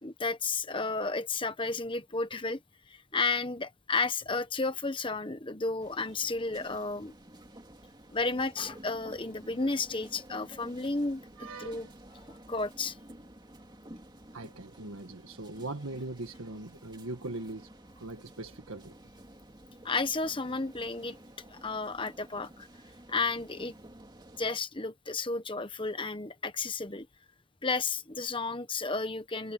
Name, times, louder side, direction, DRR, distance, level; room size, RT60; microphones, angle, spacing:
voice 1, 0.0-2.6 2.9-7.1 8.1-11.2 11.6-11.9 12.5-13.0 19.8-21.2 21.5-22.7 23.1-23.7 24.4-27.1 27.6-29.5, left 3 dB, 25° left, 1.2 m, -32 dB
sound 1, 5.8-24.5, right 1 dB, 20° right, 2.5 m, -52 dB
voice 2, 11.4-11.9 14.3-19.0, right 2 dB, 75° right, 1.6 m, -41 dB
head